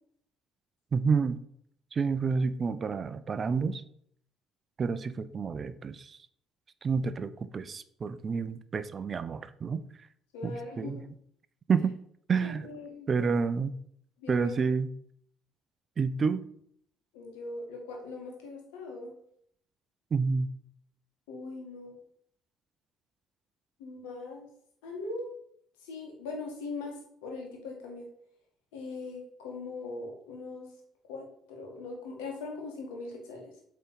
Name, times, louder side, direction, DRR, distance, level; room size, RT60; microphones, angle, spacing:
voice 1, 0.9-1.4 1.9-3.8 4.8-6.2 6.8-9.8 10.4-11.0 11.7-12.0 12.3-12.7 13.1-13.8 14.3-14.9 16.0-16.4 20.1-20.5, right 5 dB, 40° right, 14 dB, 0.5 m, -29 dB
voice 2, 10.3-10.9 12.4-13.3 14.2-14.5 17.1-19.1 21.3-22.0 23.8-24.5 24.8-25.3 25.8-28.1 28.7-30.7 31.1-33.6, left 3 dB, 70° left, 0 dB, 1.9 m, -40 dB
8.1 x 3.8 x 5.2 m, 0.67 s
figure-of-eight pair, 50°, 0 cm